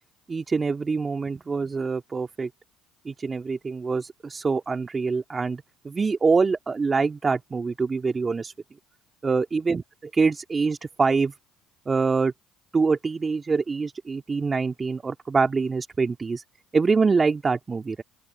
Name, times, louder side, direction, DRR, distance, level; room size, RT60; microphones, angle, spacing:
voice 1, 0.3-2.5 3.0-8.5 9.2-9.8 10.1-11.3 11.9-12.3 12.7-16.4 16.7-18.0, right 4 dB, 30° right, 2.4 m, -25 dB
open air
hypercardioid pair, 70°, 0 cm